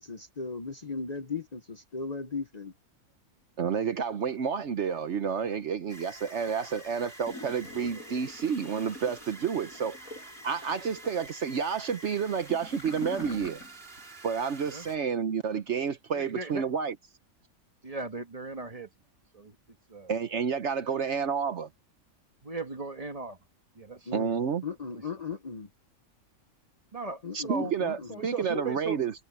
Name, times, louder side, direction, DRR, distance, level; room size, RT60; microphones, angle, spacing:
voice 1, 0.0-2.7 24.1-24.3 24.6-25.7 27.2-28.2, left 4 dB, 35° left, 0.9 m, -37 dB
voice 2, 3.6-10.2 10.4-13.6 14.2-16.9 20.1-21.7 24.1-24.6 27.3-29.1, right 6 dB, 60° right, 1.1 m, -30 dB
sound 1, 5.9-15.0, right 1 dB, 40° right, 5.5 m, -48 dB
Gurgling / Toilet flush, 7.2-14.1 14.4-14.5, left 1 dB, 90° left, 7.5 m, -45 dB
voice 3, 16.1-16.7 17.8-18.9 19.3-19.6 19.9-20.1 20.9-21.0 22.4-23.4 23.7-24.2 24.7-25.0 26.9-27.7 28.1-29.0, right 3 dB, 25° right, 1.6 m, -38 dB
omnidirectional pair, 1.4 m